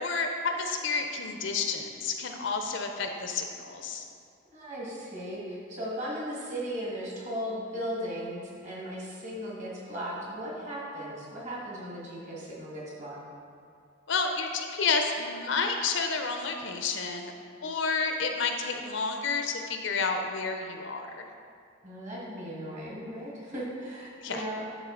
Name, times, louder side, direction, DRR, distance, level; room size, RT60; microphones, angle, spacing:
voice 1, 0.0-4.0 14.1-17.3 17.6-21.2 24.2-24.4, left 4 dB, 60° left, 4 dB, 0.5 m, -30 dB
voice 2, 4.5-13.2 21.8-24.6, equal, 35° right, -5 dB, 1.6 m, -37 dB
10.5 x 3.6 x 3.7 m, 2.3 s
head